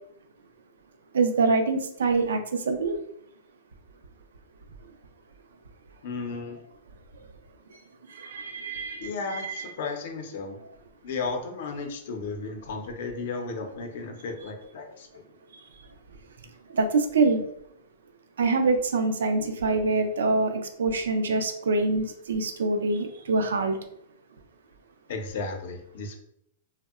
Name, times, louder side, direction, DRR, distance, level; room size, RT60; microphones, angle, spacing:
voice 1, 1.1-3.0 8.1-9.6 16.7-17.4 18.4-23.8, right 3 dB, 90° right, 6 dB, 0.4 m, -25 dB
voice 2, 6.0-6.6 9.0-10.6 11.0-15.2 25.1-26.2, left 4 dB, 65° left, 4 dB, 0.5 m, -34 dB
2.7 x 2.0 x 2.3 m, 0.73 s
hypercardioid pair, 140°, 0 cm